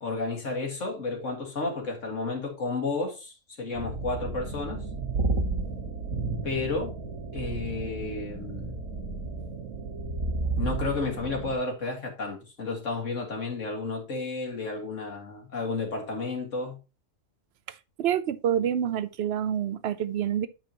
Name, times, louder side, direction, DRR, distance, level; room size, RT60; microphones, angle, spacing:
voice 1, 0.0-4.8 6.4-6.9 7.3-8.8 10.6-16.8, left 3 dB, 65° left, 2.1 m, -32 dB
sound 1, 3.7-11.5, right 3 dB, 85° right, 1.8 m, -32 dB
voice 2, 18.0-20.5, right 9 dB, 60° right, 0.8 m, -27 dB
9.0 x 6.0 x 2.9 m
omnidirectional pair, 1.4 m